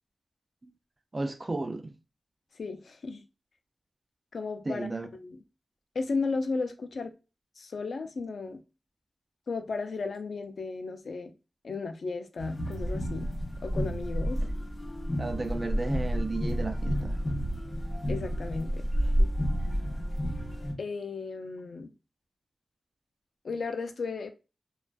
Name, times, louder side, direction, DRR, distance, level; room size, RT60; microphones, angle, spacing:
voice 1, 1.1-1.9 4.7-5.1 15.2-17.2, right 2 dB, 30° right, 0.3 m, -33 dB
voice 2, 2.6-3.2 4.3-5.4 5.9-7.1 7.6-8.6 9.5-11.3 11.6-13.3 13.6-14.4 18.1-19.3 20.8-21.9 23.4-24.3, left 4 dB, 75° left, 0.4 m, -34 dB
sound 1, 12.4-20.7, equal, 35° left, 0.8 m, -30 dB
2.5 x 2.2 x 2.2 m
wide cardioid pair, 120°, 0 cm